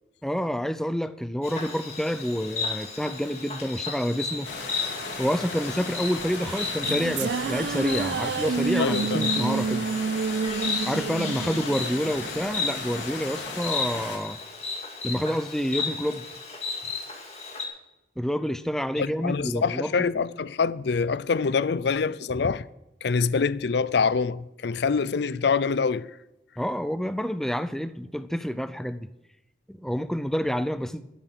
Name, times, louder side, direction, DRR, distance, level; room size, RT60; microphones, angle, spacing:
voice 1, 0.2-4.5 5.2-9.9 10.8-14.4 15.0-16.3 18.2-20.1 26.6-29.1 29.7-31.0, equal, ahead, 0.5 m, -28 dB
Insect, 1.4-17.7, left 4 dB, 35° left, 2.4 m, -34 dB
sound 1, 4.4-14.2, left 3 dB, 85° left, 3.0 m, -36 dB
sound 2, 6.2-12.8, right 5 dB, 75° right, 0.4 m, -29 dB
voice 2, 8.8-9.3 19.0-22.6 23.0-26.1, left 5 dB, 65° left, 0.5 m, -25 dB
12.5 x 10.5 x 6.1 m
head